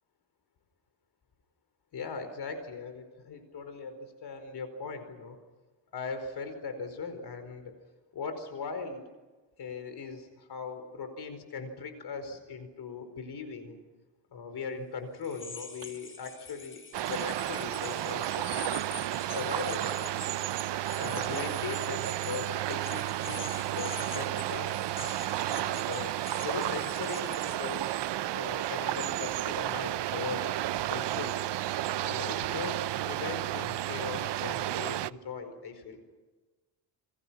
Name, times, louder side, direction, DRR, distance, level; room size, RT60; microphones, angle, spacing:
voice 1, 1.9-5.4 5.9-7.7 8.1-9.0 9.6-13.8 14.3-16.8 17.1-18.8 19.2-20.3 21.0-24.8 25.4-26.1 26.4-28.0 28.3-30.4 30.8-31.4 32.0-32.8 33.0-36.0, left 5 dB, 60° left, 8 dB, 4.9 m, -39 dB
sound 1, 15.2-27.6, left 4 dB, 25° left, 5.2 m, -46 dB
sound 2, 15.2-30.8, right 9 dB, 85° right, 4.4 m, -59 dB
sound 3, 16.9-35.1, right 14 dB, 65° right, 0.8 m, -32 dB
29.5 x 25.0 x 5.9 m, 1.2 s
cardioid pair, 135°, 45 cm